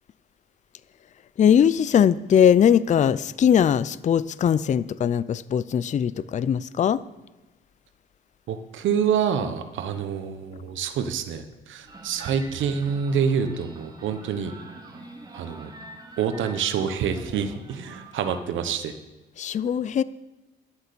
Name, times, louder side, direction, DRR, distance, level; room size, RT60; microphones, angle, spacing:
voice 1, 1.4-7.0 19.4-20.0, left 8 dB, 40° left, 0.4 m, -20 dB
voice 2, 8.5-14.5 15.3-15.7 16.2-18.9, right 7 dB, 75° right, 1.0 m, -27 dB
sound 1, 11.8-18.4, right 2 dB, 20° right, 2.3 m, -45 dB
11.5 x 8.0 x 6.8 m
cardioid pair, 90°, 20 cm